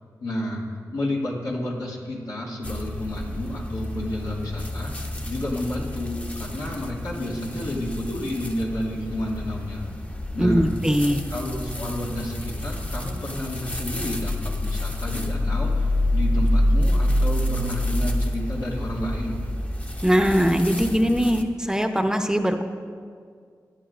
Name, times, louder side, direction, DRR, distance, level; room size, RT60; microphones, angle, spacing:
voice 1, 0.2-0.6 0.9-9.9 10.3-10.7 11.3-19.4, left 1 dB, 85° left, -5 dB, 2.2 m, -30 dB
sound 1, 2.6-21.4, left 1 dB, 20° left, 0.9 m, -28 dB
voice 2, 10.4-11.2 20.0-22.6, equal, 10° right, 6 dB, 0.8 m, -21 dB
17.5 x 10.5 x 2.5 m, 2.1 s
cardioid pair, 45°, 7 cm